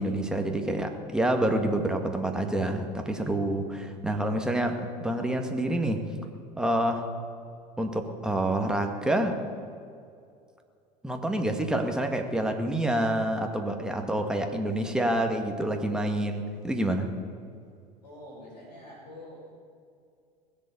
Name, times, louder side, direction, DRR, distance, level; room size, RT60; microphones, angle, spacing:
voice 1, 0.0-6.0 6.6-7.1 7.8-9.4 11.0-17.1, right 1 dB, 5° right, 3 dB, 2.0 m, -27 dB
voice 2, 18.0-19.6, left 1 dB, 80° left, -8 dB, 5.1 m, -46 dB
20.0 x 8.1 x 8.5 m, 2.3 s
hypercardioid pair, 75°, 21 cm